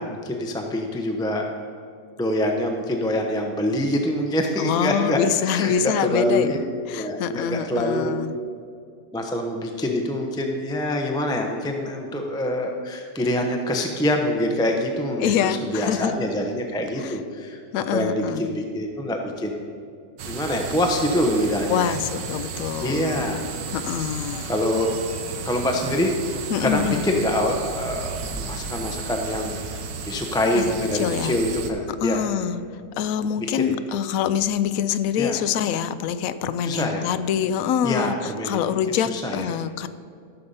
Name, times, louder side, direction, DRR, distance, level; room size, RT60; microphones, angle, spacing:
voice 1, 0.0-1.5 2.2-6.6 6.9-8.2 9.1-17.6 17.9-19.6 20.3-21.9 22.8-23.5 24.5-24.9 25.4-26.1 26.6-29.6 30.1-32.2 33.4-33.7 35.2-35.4 36.6-37.1 37.8-39.5, left 1 dB, 5° left, 2 dB, 0.4 m, -25 dB
voice 2, 4.6-6.6 6.9-8.3 15.2-16.3 17.0-17.2 17.7-18.6 21.7-23.2 23.7-24.5 26.5-27.0 30.6-31.3 32.0-32.6 33.0-38.2 38.4-39.9, left 8 dB, 70° left, 12 dB, 0.8 m, -25 dB
sound 1, 20.2-31.7, right 5 dB, 80° right, 1.6 m, -33 dB
14.0 x 6.7 x 5.5 m, 2.4 s
omnidirectional pair, 1.9 m